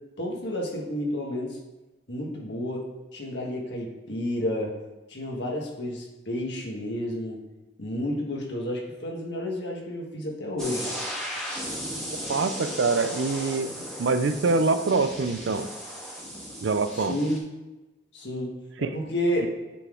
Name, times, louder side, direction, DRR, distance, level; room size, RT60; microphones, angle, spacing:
voice 1, 0.2-1.6 2.1-2.8 3.1-4.8 5.1-7.4 7.8-10.9 16.9-17.4 18.1-18.5 18.8-19.5, left 1 dB, 60° left, -1 dB, 1.5 m, -30 dB
sound 1, 10.6-17.4, equal, 5° left, 1.4 m, -36 dB
voice 2, 12.3-13.7 14.0-15.7 16.6-17.2 18.8-18.9, right 4 dB, 65° right, 10 dB, 0.5 m, -24 dB
8.3 x 3.9 x 3.7 m, 1.1 s
head